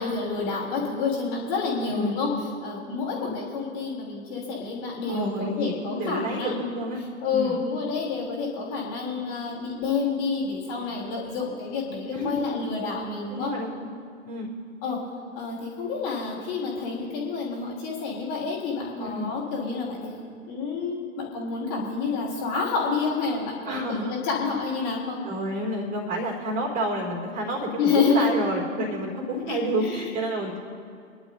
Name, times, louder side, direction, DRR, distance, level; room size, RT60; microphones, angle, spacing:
voice 1, 0.0-2.3 2.6-6.8 7.2-13.5 14.8-15.0 15.4-20.1 20.4-25.2 27.8-28.4 29.5-30.0, left 4 dB, 35° left, -4 dB, 3.2 m, -29 dB
voice 2, 1.8-2.2 3.0-3.4 5.1-7.0 7.3-7.6 12.1-12.5 13.3-13.9 14.2-14.5 19.0-19.3 23.6-24.1 24.6-24.7 25.2-30.6, right 1 dB, 20° right, 0 dB, 4.0 m, -29 dB
26.0 x 11.0 x 2.7 m, 2.3 s
figure-of-eight pair, 115°, 40 cm